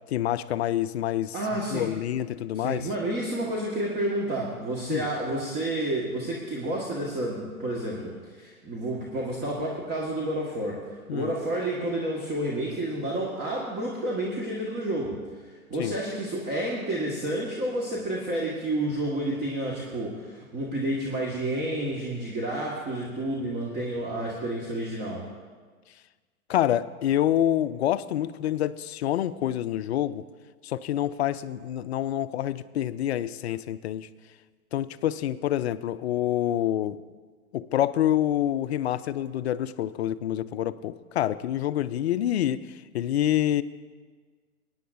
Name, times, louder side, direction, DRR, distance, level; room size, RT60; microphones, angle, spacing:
voice 1, 0.1-1.3 1.7-2.9 4.9-5.1 11.1-11.3 15.8-15.9 26.5-30.2 30.6-34.1 34.7-37.0 37.5-43.6, left 12 dB, 50° left, 14 dB, 0.5 m, -27 dB
voice 2, 1.3-1.9 2.5-10.8 11.1-15.2 15.4-25.3, right 1 dB, 25° right, -4 dB, 1.7 m, -30 dB
21.5 x 9.4 x 2.6 m, 1.5 s
figure-of-eight pair, 110°, 43 cm